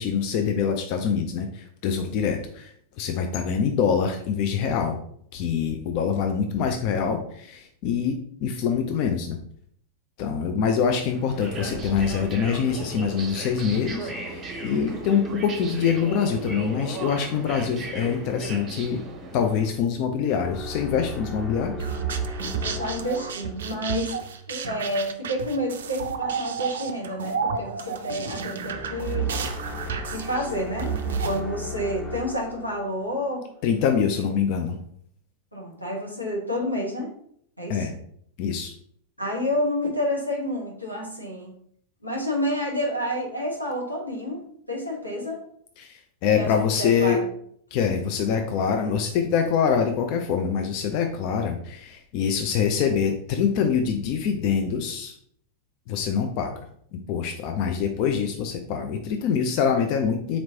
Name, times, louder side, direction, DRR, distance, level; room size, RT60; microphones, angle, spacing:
voice 1, 0.0-5.0 5.3-9.4 10.2-19.0 19.3-21.7 33.6-34.8 37.7-37.9 38.4-38.7 45.8-47.2 47.7-55.1 55.9-56.5 56.9-60.4, left 7 dB, 45° left, 5 dB, 0.4 m, -25 dB
sound 1, 11.1-19.7, right 2 dB, 25° right, 0.7 m, -36 dB
sound 2, 20.4-24.1 28.6-33.4, left 3 dB, 5° left, 0.8 m, -37 dB
sound 3, 21.8-31.4, right 6 dB, 60° right, 0.4 m, -31 dB
voice 2, 22.6-24.2 24.5-29.3 30.1-30.9 31.2-33.4 34.2-34.3 35.5-37.1 37.6-37.9 39.2-41.5 42.0-45.4 46.3-47.2, equal, 90° left, -2 dB, 1.0 m, -29 dB
4.1 x 2.9 x 2.8 m, 0.65 s
figure-of-eight pair, 90°, 0 cm